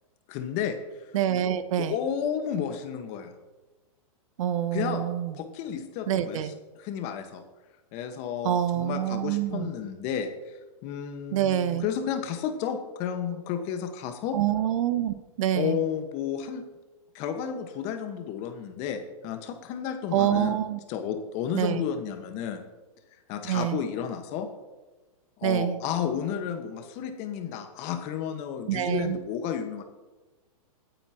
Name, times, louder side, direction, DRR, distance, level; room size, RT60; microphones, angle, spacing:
voice 1, 0.3-0.8 1.0-1.1 1.8-3.3 4.7-5.1 5.3-7.4 7.9-10.6 10.8-14.4 15.5-16.6 17.1-20.6 20.9-22.6 23.3-24.5 25.4-29.8, left 8 dB, 40° left, 6 dB, 1.5 m, -32 dB
voice 2, 1.1-2.0 4.4-5.3 6.1-6.5 8.4-9.7 11.3-11.9 14.3-15.8 20.1-20.8 21.5-21.8 23.4-23.8 25.4-25.8 28.7-29.2, right 11 dB, 60° right, 13 dB, 0.9 m, -26 dB
20.5 x 8.8 x 3.0 m, 1.2 s
hypercardioid pair, 135°, 19 cm